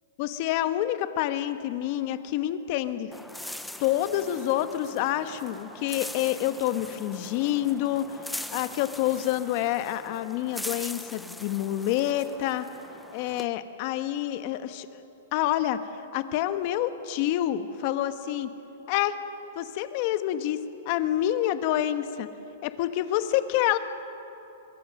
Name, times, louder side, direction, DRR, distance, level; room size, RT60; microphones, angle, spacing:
voice 1, 0.2-3.1 3.8-8.2 8.5-12.7 13.1-15.0 15.3-18.5 18.9-19.2 19.5-20.6 20.8-22.3 22.6-23.8, left 12 dB, 40° left, 10 dB, 1.2 m, -27 dB
sound 1, 3.1-13.5, left 1 dB, ahead, 0.6 m, -41 dB
24.0 x 22.0 x 6.6 m, 3.0 s
hypercardioid pair, 155°, 0 cm